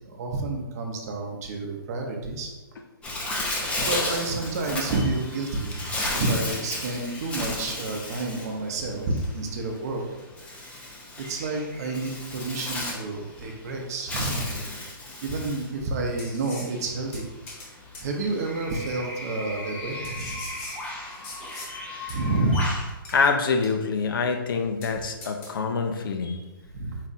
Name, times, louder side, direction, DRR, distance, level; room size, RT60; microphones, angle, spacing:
voice 1, 0.2-2.5 3.8-10.0 11.3-14.5 15.2-17.3 18.0-20.3 22.1-22.8 26.7-27.0, right 2 dB, 45° right, 2 dB, 0.7 m, -29 dB
Bird, 3.0-22.9, left 1 dB, 10° left, 0.5 m, -34 dB
sound 1, 14.2-14.5 15.6-15.7 16.2-16.7 17.1-17.7 17.9-18.1 18.8-18.9 20.0-21.7 22.1-22.2 23.0-23.3 23.6-24.0 24.3-24.4 24.8-24.9 25.2-25.5, left 2 dB, 35° left, 1.0 m, -42 dB
voice 2, 23.1-26.4, left 4 dB, 65° left, 5 dB, 0.6 m, -25 dB
4.1 x 2.4 x 4.0 m, 1.1 s
hypercardioid pair, 155°, 12 cm